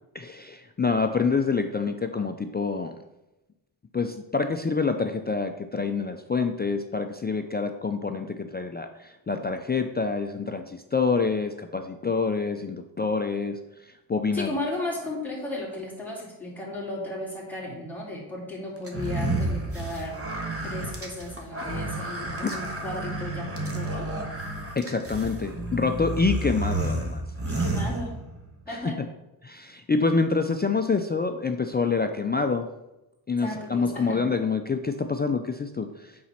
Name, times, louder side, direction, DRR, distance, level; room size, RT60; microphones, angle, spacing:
voice 1, 0.1-3.0 3.9-14.5 24.7-27.2 28.7-29.1 29.4-32.7 33.3-36.2, left 4 dB, 25° left, 6 dB, 0.3 m, -27 dB
voice 2, 14.3-20.2 20.6-24.1 27.4-28.2 28.7-29.0 33.4-34.2, left 1 dB, 5° left, -6 dB, 2.7 m, -35 dB
sound 1, 18.9-28.5, right 2 dB, 30° right, 1.4 m, -31 dB
8.7 x 4.1 x 5.7 m, 0.95 s
wide cardioid pair, 130°, 48 cm